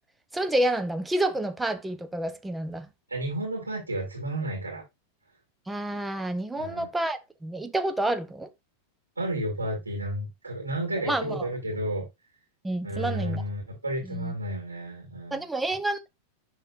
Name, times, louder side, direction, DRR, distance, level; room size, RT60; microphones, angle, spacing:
voice 1, 0.3-2.9 5.7-8.5 11.1-11.5 12.6-13.4 14.0-14.3 15.3-16.1, right 1 dB, 5° right, 0.8 m, -29 dB
voice 2, 3.1-4.8 6.5-6.9 9.2-12.1 12.8-15.4, right 1 dB, 80° right, 2.3 m, -32 dB
10.5 x 3.8 x 2.6 m
figure-of-eight pair, 90°, 0 cm